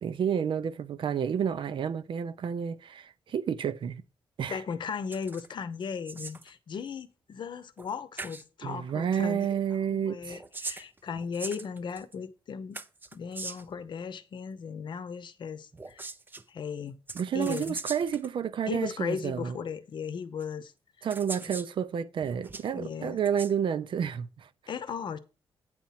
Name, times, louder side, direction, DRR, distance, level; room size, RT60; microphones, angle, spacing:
voice 1, 0.0-4.0 4.4-4.6 8.6-10.4 17.1-19.6 21.0-24.5, right 8 dB, 60° right, 0.6 m, -30 dB
voice 2, 4.5-9.5 9.9-12.8 13.1-16.1 16.5-17.0 17.3-17.8 18.7-20.7 22.7-23.2 24.7-25.2, left 6 dB, 55° left, 0.8 m, -36 dB
sound 1, 5.1-5.5 5.8-6.5 7.8-7.9 8.2-8.4 10.2-12.1 12.7-13.8 15.7-16.4 17.1-18.3 19.2-19.3 20.4-20.5 21.1-21.7 22.2-22.7 23.2-23.5, right 3 dB, 20° right, 0.6 m, -41 dB
9.0 x 4.2 x 5.7 m
cardioid pair, 125°, 9 cm